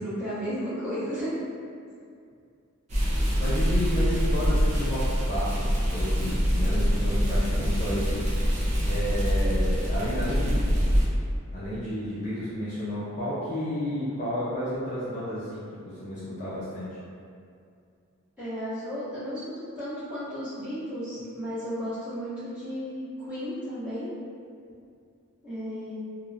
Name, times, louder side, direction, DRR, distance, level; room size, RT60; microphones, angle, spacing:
voice 1, 0.0-1.4 18.4-24.1 25.4-25.9, equal, 5° right, -15 dB, 1.0 m, -34 dB
sound 1, 2.9-11.1, equal, 30° right, 0.5 m, -25 dB
voice 2, 3.0-8.2 8.9-10.7 11.5-15.6 15.9-16.9, equal, 35° left, -10 dB, 0.4 m, -32 dB
2.9 x 2.1 x 2.4 m, 2.4 s
head